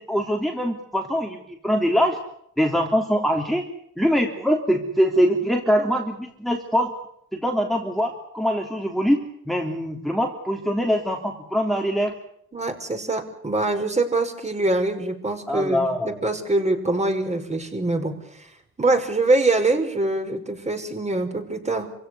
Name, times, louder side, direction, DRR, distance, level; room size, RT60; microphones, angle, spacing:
voice 1, 0.1-1.4 1.6-2.2 2.6-3.6 4.0-6.9 7.3-12.2 15.5-16.2, equal, ahead, 1 dB, 3.3 m, -23 dB
voice 2, 12.5-18.5 18.8-21.9, right 2 dB, 20° right, 5 dB, 5.5 m, -24 dB
26.5 x 16.5 x 9.8 m, 0.74 s
cardioid pair, 90°, 30 cm